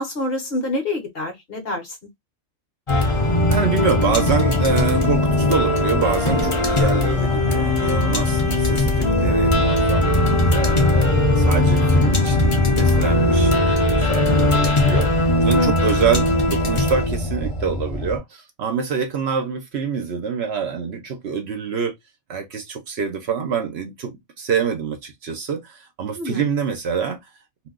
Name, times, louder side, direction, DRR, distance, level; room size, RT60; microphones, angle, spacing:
voice 1, 0.0-1.8 15.5-15.7 26.2-26.4, left 2 dB, 50° left, 1.1 m, -26 dB
sound 1, 2.9-18.2, left 1 dB, 35° left, 0.6 m, -19 dB
voice 2, 3.5-10.1 10.5-15.1 15.4-21.9 22.3-27.2, right 6 dB, 60° right, 0.9 m, -26 dB
2.6 x 2.2 x 3.6 m
omnidirectional pair, 1.3 m